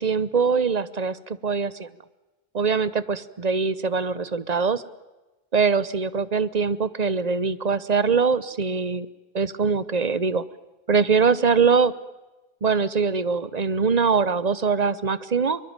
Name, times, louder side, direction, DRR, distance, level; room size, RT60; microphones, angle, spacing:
voice 1, 0.0-1.9 2.5-4.8 5.5-9.1 9.3-10.4 10.9-11.9 12.6-15.6, right 5 dB, 40° right, 17 dB, 1.0 m, -22 dB
23.5 x 23.0 x 8.9 m, 1.1 s
omnidirectional pair, 1.1 m